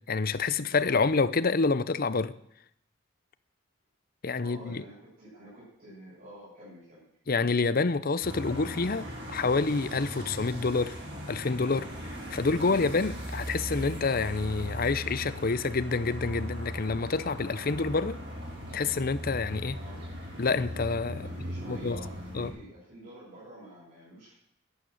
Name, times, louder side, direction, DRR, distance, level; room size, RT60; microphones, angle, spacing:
voice 1, 0.1-2.3 4.2-4.8 7.3-11.0 11.3-11.9 12.3-18.2 18.7-19.8 20.4-21.3 21.7-22.0 22.3-22.5, left 4 dB, 45° left, 0.7 m, -28 dB
voice 2, 4.4-7.1 19.6-20.0 21.2-24.3, equal, 45° right, 8.0 m, -48 dB
sound 1, 8.2-22.5, equal, 60° right, 6.7 m, -38 dB
11.5 x 11.5 x 7.8 m
head